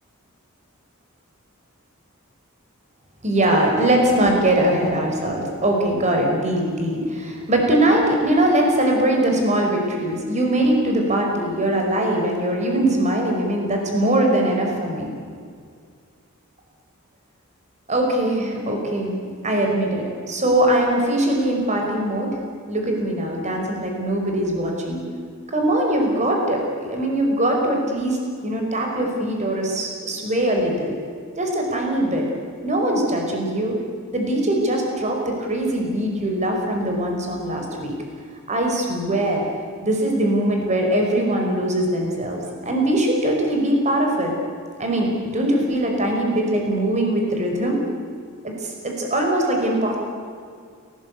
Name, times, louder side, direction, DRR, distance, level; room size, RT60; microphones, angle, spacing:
voice 1, 3.2-15.1 17.9-19.2 19.4-22.4 22.7-25.0 25.5-31.0 31.4-32.3 32.6-33.8 34.1-37.9 38.5-39.5 39.8-44.3 44.8-47.8 48.4-50.0, right 1 dB, 35° right, 1 dB, 5.2 m, -21 dB
30.0 x 19.5 x 8.4 m, 2.2 s
head